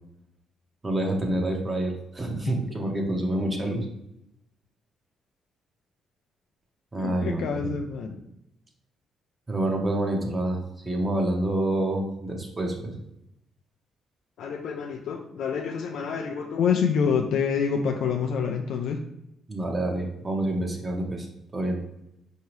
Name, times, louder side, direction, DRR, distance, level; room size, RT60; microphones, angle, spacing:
voice 1, 0.8-3.9 6.9-7.7 9.5-12.9 19.5-21.3 21.5-21.8, right 1 dB, 25° right, 1 dB, 0.8 m, -27 dB
voice 2, 7.0-8.2 14.4-19.1, left 6 dB, 75° left, 3 dB, 0.3 m, -27 dB
4.7 x 2.8 x 3.1 m, 0.83 s
cardioid pair, 90°, 0 cm